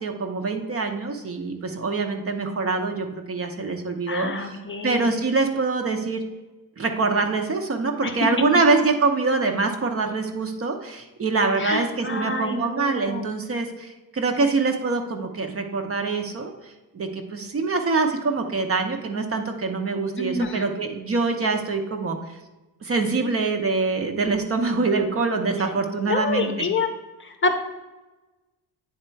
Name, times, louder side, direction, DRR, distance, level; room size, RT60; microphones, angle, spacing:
voice 1, 0.0-4.5 4.8-6.2 6.8-16.5 16.9-22.2 22.8-26.7, right 3 dB, 35° right, 4 dB, 0.8 m, -24 dB
voice 2, 4.1-5.1 8.0-8.2 11.6-13.2 20.2-20.6 26.1-26.9 27.2-27.6, left 3 dB, 30° left, 5 dB, 0.7 m, -27 dB
8.9 x 3.6 x 4.5 m, 1.1 s
cardioid pair, 115°, 41 cm